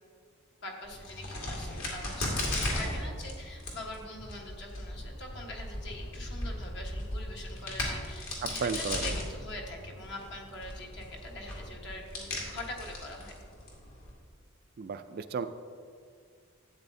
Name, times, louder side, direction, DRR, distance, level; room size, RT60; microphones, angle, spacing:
voice 1, 0.6-13.3, left 2 dB, 55° left, 0 dB, 1.3 m, -44 dB
Crack, 0.8-14.1, left 1 dB, 70° left, 2.1 m, -37 dB
voice 2, 8.4-9.1 14.8-15.5, right 5 dB, 45° right, 10 dB, 0.3 m, -34 dB
12.0 x 8.3 x 2.7 m, 2.1 s
head